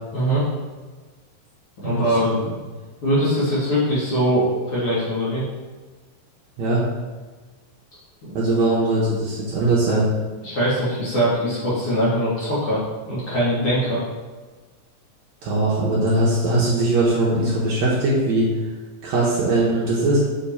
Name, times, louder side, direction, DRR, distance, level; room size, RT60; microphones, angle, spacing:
voice 1, 0.1-0.4 1.8-2.5 3.0-5.4 8.3-8.4 10.4-12.8 13.1-14.0, equal, 50° left, -10 dB, 1.8 m, -22 dB
voice 2, 1.8-2.3 6.6-6.8 8.3-10.1 15.4-18.5 19.0-20.2, right 2 dB, 70° right, -6 dB, 1.9 m, -20 dB
7.3 x 3.5 x 4.1 m, 1.3 s
omnidirectional pair, 4.0 m